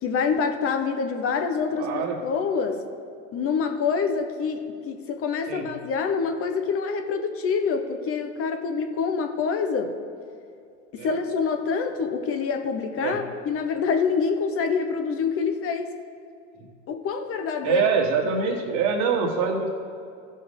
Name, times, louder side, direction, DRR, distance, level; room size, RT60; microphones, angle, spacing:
voice 1, 0.0-2.8 3.3-9.9 10.9-15.9 16.9-17.9 18.2-18.5, left 5 dB, 35° left, 7 dB, 0.9 m, -26 dB
voice 2, 1.7-2.2 5.5-5.7 11.0-11.1 13.0-13.2 16.6-16.7 17.6-19.7, right 5 dB, 50° right, 1 dB, 1.7 m, -25 dB
14.5 x 5.5 x 3.6 m, 2.5 s
supercardioid pair, 110°, 37 cm